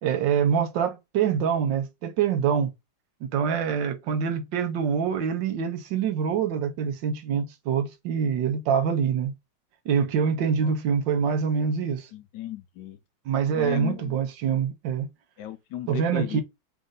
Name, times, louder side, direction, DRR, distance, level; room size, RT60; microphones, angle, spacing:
voice 1, 0.0-2.7 3.2-9.3 9.8-12.1 13.2-15.1 15.9-16.4, right 7 dB, 90° right, 1.5 m, -25 dB
voice 2, 12.1-13.0 13.5-14.2 15.4-16.4, left 10 dB, 75° left, 1.3 m, -35 dB
4.2 x 2.6 x 3.7 m
omnidirectional pair, 1.9 m